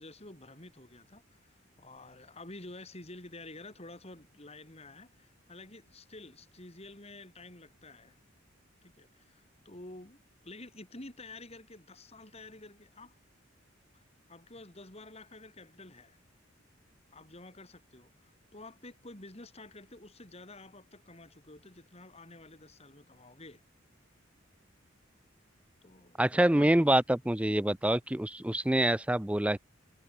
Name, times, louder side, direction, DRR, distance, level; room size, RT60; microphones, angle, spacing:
voice 1, 0.0-1.4 1.8-8.2 8.8-13.2 13.9-14.0 14.3-16.2 17.1-23.6 25.8-26.8, left 2 dB, 30° left, 4.0 m, -50 dB
voice 2, 26.2-29.6, right 1 dB, 5° right, 0.5 m, -26 dB
head